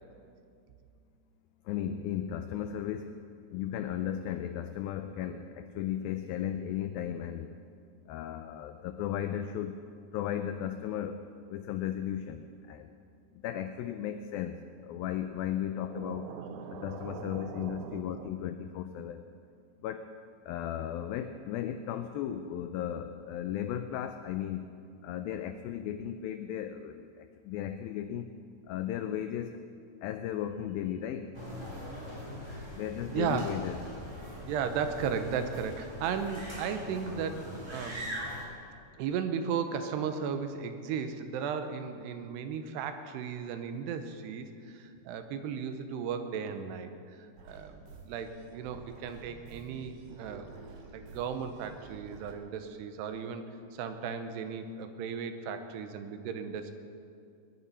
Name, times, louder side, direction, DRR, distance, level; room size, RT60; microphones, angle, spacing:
voice 1, 1.7-3.2 3.5-7.6 8.1-9.8 10.1-11.2 11.5-12.9 13.3-16.3 16.7-19.2 19.8-20.1 20.4-24.7 25.0-28.4 28.7-29.6 30.0-31.3 32.8-33.8, left 10 dB, 90° left, 9 dB, 2.0 m, -35 dB
voice 2, 15.9-18.3 33.1-33.5 34.4-38.1 39.0-46.9 47.5-50.5 50.9-53.4 53.7-56.7, right 7 dB, 90° right, 8 dB, 2.9 m, -36 dB
sound 1, 31.3-38.4, equal, 10° right, 2.2 m, -42 dB
sound 2, 47.4-52.4, right 4 dB, 65° right, 2.6 m, -50 dB
20.0 x 10.0 x 5.6 m, 2.4 s
omnidirectional pair, 4.8 m